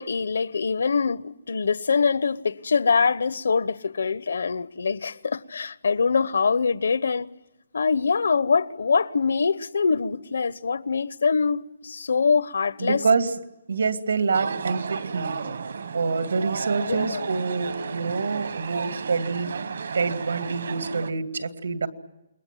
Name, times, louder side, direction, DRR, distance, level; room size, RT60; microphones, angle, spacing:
voice 1, 0.0-7.3 7.7-13.0 16.9-17.2, left 5 dB, 75° left, 1.0 m, -24 dB
voice 2, 12.8-13.4 13.7-15.4 15.9-19.6 19.9-21.9, right 4 dB, 85° right, 2.4 m, -26 dB
sound 1, 14.3-21.1, right 5 dB, 60° right, 1.2 m, -33 dB
29.0 x 22.0 x 9.3 m
hypercardioid pair, 180°, 0 cm